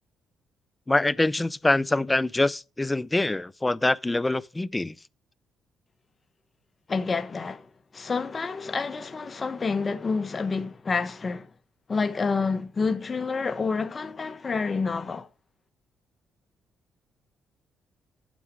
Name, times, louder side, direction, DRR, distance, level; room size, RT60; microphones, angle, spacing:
voice 1, 0.9-5.0, left 2 dB, 15° left, 0.5 m, -24 dB
voice 2, 6.9-11.5 11.9-15.3, left 4 dB, 35° left, 1.1 m, -28 dB
9.4 x 7.2 x 5.2 m
cardioid pair, 90°, 0 cm